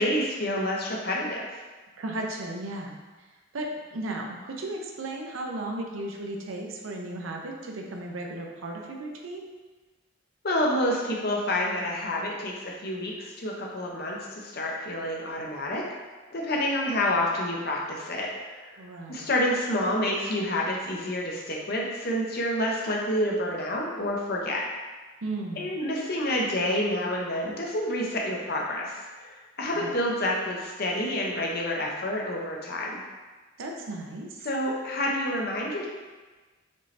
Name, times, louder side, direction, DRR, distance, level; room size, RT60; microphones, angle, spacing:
voice 1, 0.0-1.5 10.4-15.8 16.3-18.8 19.1-24.7 25.6-33.0 34.4-35.9, left 1 dB, 50° left, -2 dB, 0.7 m, -28 dB
voice 2, 2.0-3.0 3.5-9.5 18.8-19.3 25.2-25.7 29.8-29.9 33.6-34.5, right 2 dB, 80° right, 0 dB, 0.6 m, -35 dB
5.1 x 2.8 x 3.2 m, 1.3 s
head